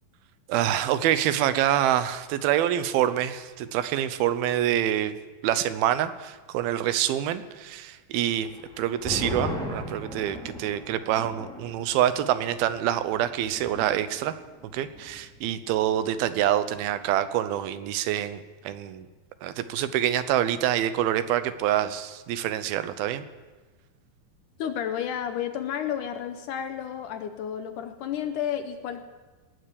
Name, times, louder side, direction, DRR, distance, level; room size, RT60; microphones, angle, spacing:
voice 1, 0.5-5.1 5.4-8.5 8.8-14.3 14.7-19.1 19.4-23.2, right 11 dB, 90° right, 12 dB, 2.7 m, -26 dB
sound 1, 8.4-15.4 15.7-15.8 16.2-16.6, left 1 dB, ahead, 2.0 m, -38 dB
voice 2, 24.6-29.0, left 9 dB, 75° left, 8 dB, 2.1 m, -31 dB
19.0 x 7.8 x 8.4 m, 1.3 s
omnidirectional pair, 4.2 m